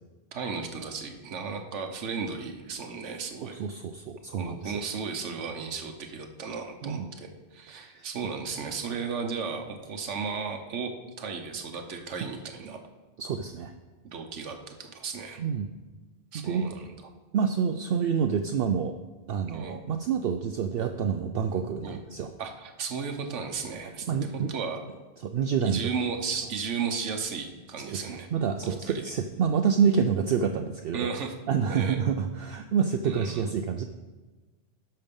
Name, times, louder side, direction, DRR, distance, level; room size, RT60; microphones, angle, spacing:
voice 1, 0.3-3.6 4.3-10.9 11.2-12.8 14.1-15.4 16.3-16.9 19.5-19.8 21.8-22.0 22.4-24.8 25.6-28.3 28.6-29.0 30.9-31.3 31.6-32.0 33.0-33.5, right 5 dB, 90° right, 5 dB, 1.3 m, -35 dB
voice 2, 3.4-4.8 6.8-7.1 7.7-8.1 13.2-13.7 15.4-15.7 16.4-16.7 17.3-18.9 19.3-22.3 24.1-24.5 25.2-25.8 27.9-31.1 31.5-33.8, right 7 dB, 65° right, 7 dB, 0.7 m, -28 dB
12.5 x 5.5 x 5.3 m, 1.2 s
omnidirectional pair, 1.2 m